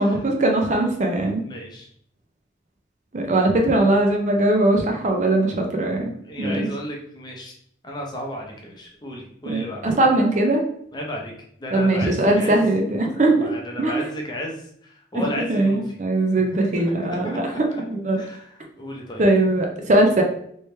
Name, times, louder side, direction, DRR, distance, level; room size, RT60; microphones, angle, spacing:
voice 1, 0.0-1.4 3.1-6.1 6.4-6.7 9.5-10.6 11.7-13.5 13.8-13.9 15.1-15.2 15.5-17.5 17.9-18.2 19.2-20.2, right 2 dB, 40° right, 2 dB, 0.5 m, -20 dB
voice 2, 1.4-1.9 5.4-7.5 7.8-9.8 10.9-11.3 11.6-12.6 13.2-15.8 16.5-17.8 18.1-18.5 18.8-19.3, equal, 20° left, -1 dB, 0.7 m, -34 dB
3.1 x 3.0 x 3.2 m, 0.69 s
head